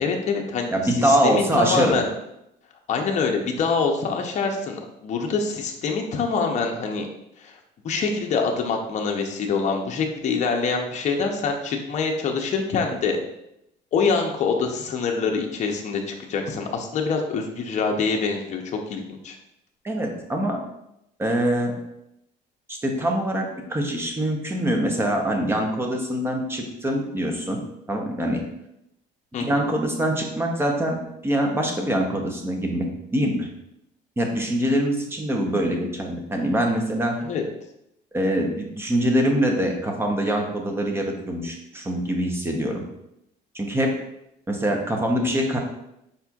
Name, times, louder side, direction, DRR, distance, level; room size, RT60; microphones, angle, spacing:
voice 1, 0.0-0.7 1.0-2.1 2.9-7.1 7.4-7.5 7.8-13.2 13.9-19.4 29.3-29.6 37.2-37.4, left 5 dB, 40° left, 2 dB, 0.7 m, -25 dB
voice 2, 0.7-2.0 19.8-20.6 21.2-21.8 22.7-27.6 27.9-28.4 29.4-32.9 33.1-33.5 34.2-37.2 38.1-42.8 43.5-43.9 44.5-45.6, right 1 dB, 15° right, 2 dB, 0.7 m, -24 dB
5.1 x 4.2 x 2.4 m, 0.82 s
cardioid pair, 140°, 19 cm